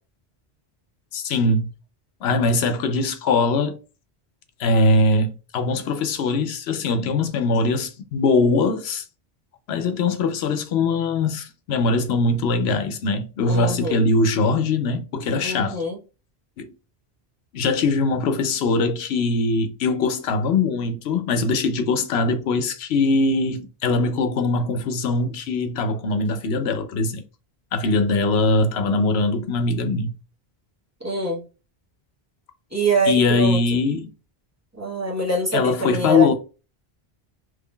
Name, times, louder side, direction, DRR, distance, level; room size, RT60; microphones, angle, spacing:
voice 1, 1.1-1.7 2.2-3.7 4.6-9.0 9.7-15.8 16.6-16.7 17.5-27.2 27.7-30.1 33.1-34.1 35.5-36.3, left 3 dB, 85° left, 0.9 m, -21 dB
voice 2, 13.5-14.0 15.4-16.0 31.0-31.4 32.7-33.8 34.8-36.3, right 2 dB, 15° right, 1.0 m, -24 dB
3.7 x 3.1 x 2.2 m
omnidirectional pair, 1.0 m